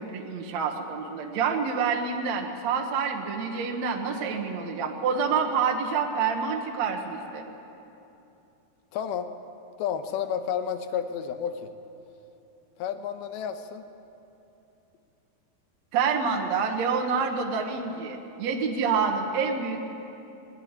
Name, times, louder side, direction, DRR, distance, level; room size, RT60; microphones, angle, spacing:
voice 1, 0.0-7.5 15.9-19.8, right 5 dB, 60° right, 2 dB, 1.9 m, -27 dB
voice 2, 8.9-9.3 9.8-11.7 12.8-13.8, left 8 dB, 75° left, 8 dB, 2.8 m, -31 dB
20.0 x 19.5 x 8.8 m, 2.9 s
omnidirectional pair, 4.7 m